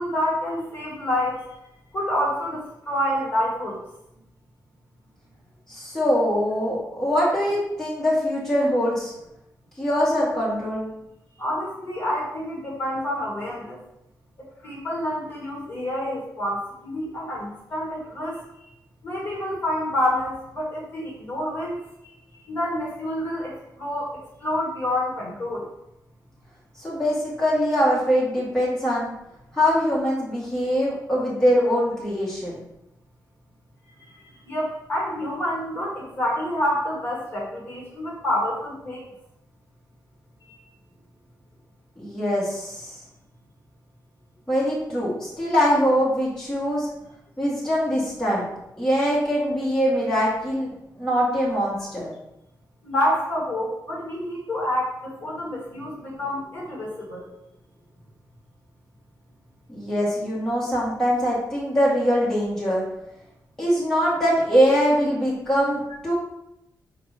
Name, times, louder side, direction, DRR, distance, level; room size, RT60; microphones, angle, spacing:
voice 1, 0.0-1.5 1.9-3.8 11.4-13.8 14.6-18.4 19.0-21.8 22.5-24.1 24.4-25.7 34.0-34.1 34.5-39.0 52.8-57.3, left 1 dB, 30° left, -3 dB, 2.1 m, -28 dB
voice 2, 5.7-9.1 9.8-10.9 26.8-29.1 29.5-32.5 42.0-42.9 44.5-46.9 47.4-48.5 48.8-50.7 51.0-52.1 59.7-62.9 63.6-66.1, equal, 5° left, -7 dB, 2.0 m, -23 dB
5.9 x 5.0 x 5.0 m, 0.85 s
wide cardioid pair, 180°, 7 cm